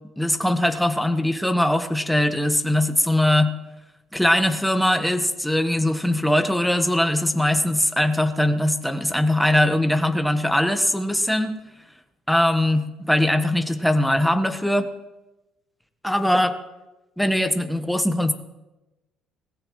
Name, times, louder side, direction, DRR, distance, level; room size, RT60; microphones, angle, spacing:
voice 1, 0.2-3.5 4.1-11.5 12.3-14.9 16.0-16.6 17.2-18.3, left 1 dB, ahead, 7 dB, 1.2 m, -21 dB
20.5 x 15.0 x 3.2 m, 1.0 s
cardioid pair, 115°, 0 cm